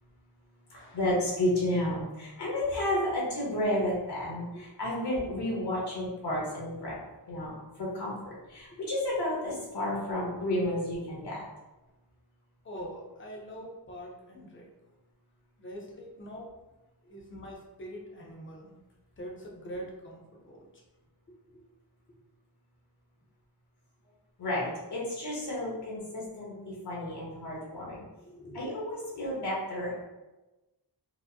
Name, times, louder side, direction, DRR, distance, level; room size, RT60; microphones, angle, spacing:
voice 1, 0.7-7.0 7.3-11.4 24.4-28.0 28.5-30.0, left 1 dB, 70° left, -5 dB, 1.2 m, -32 dB
voice 2, 12.6-14.7 15.6-16.5 17.0-18.8 19.2-20.6 21.5-21.6 28.3-28.6, equal, 30° left, -1 dB, 0.6 m, -43 dB
4.7 x 2.1 x 2.7 m, 1.1 s
wide cardioid pair, 170°, 42 cm